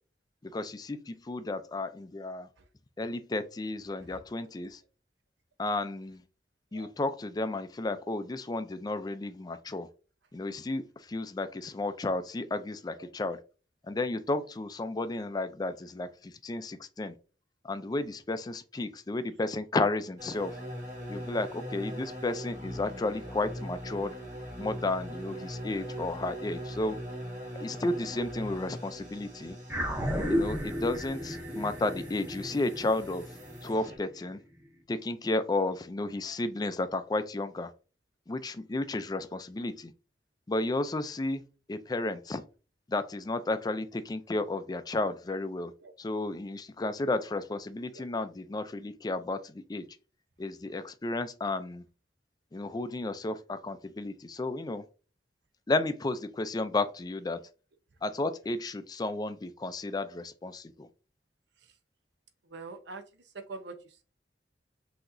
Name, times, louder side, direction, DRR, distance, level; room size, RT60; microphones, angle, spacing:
voice 1, 0.4-2.5 3.0-4.8 5.6-6.2 6.7-9.9 10.3-13.4 13.8-17.1 17.6-20.6 21.1-24.2 24.6-27.0 27.6-29.6 30.3-33.3 33.6-34.4 34.9-37.7 38.3-39.9 40.5-41.4 41.7-42.4 42.9-45.7 46.0-49.9 50.4-51.8 52.5-54.8 55.7-57.4 58.0-60.9, left 2 dB, 25° left, 0.4 m, -33 dB
sound 1, 20.2-34.0, equal, 45° right, 2.1 m, -41 dB
sound 2, 29.7-34.3, equal, 10° right, 0.8 m, -33 dB
voice 2, 62.4-64.0, right 3 dB, 85° right, 0.7 m, -44 dB
5.9 x 2.8 x 2.6 m
head